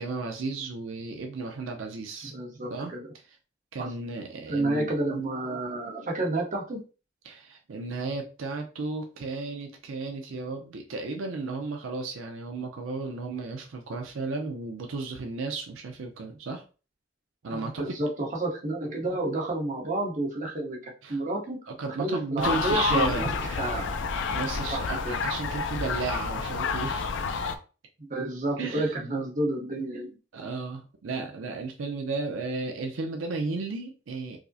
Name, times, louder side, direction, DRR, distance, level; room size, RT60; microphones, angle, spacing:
voice 1, 0.0-2.3 2.7-2.9 3.7-4.9 7.2-16.6 17.4-17.9 21.0-21.2 21.7-23.4 24.3-27.1 28.6-29.1 30.3-34.4, right 3 dB, 85° right, 3 dB, 0.5 m, -34 dB
voice 2, 2.3-3.1 3.8-3.9 4.5-6.8 17.5-20.8 21.1-21.6 22.0-23.9 24.7-25.2 28.0-30.1, right 2 dB, 40° right, -1 dB, 1.0 m, -30 dB
sound 1, 22.4-27.6, left 5 dB, 65° left, 0.4 m, -29 dB
4.9 x 2.0 x 2.6 m, 0.34 s
head